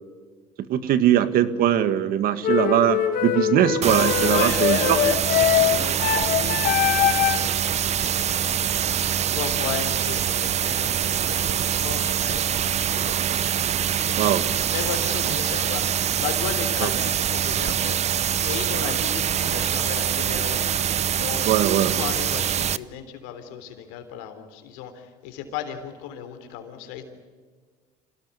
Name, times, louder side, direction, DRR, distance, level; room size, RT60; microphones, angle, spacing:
voice 1, 0.6-5.0 14.2-14.4 16.8-16.9 21.5-22.0, right 11 dB, 65° right, 12 dB, 1.8 m, -21 dB
sound 1, 2.4-7.5, left 10 dB, 60° left, 1.9 m, -22 dB
sound 2, 3.8-22.8, right 9 dB, 45° right, 0.8 m, -24 dB
voice 2, 4.2-12.6 12.9-13.4 13.9-20.6 21.2-21.5 21.8-27.0, left 9 dB, 90° left, 8 dB, 3.5 m, -35 dB
26.5 x 18.0 x 9.8 m, 1.5 s
supercardioid pair, 95°, 16 cm